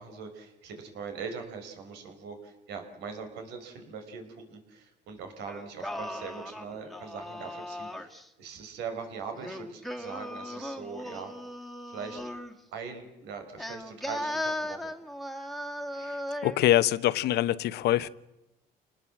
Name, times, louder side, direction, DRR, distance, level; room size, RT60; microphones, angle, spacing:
voice 1, 0.0-11.3 11.9-12.2 12.7-14.9, right 5 dB, 90° right, 5.5 m, -41 dB
Singing, 5.5-8.3 9.4-12.6 13.6-16.7, left 1 dB, ahead, 2.1 m, -37 dB
voice 2, 16.4-18.1, left 13 dB, 75° left, 1.0 m, -24 dB
28.0 x 20.0 x 7.6 m
cardioid pair, 110°, 17 cm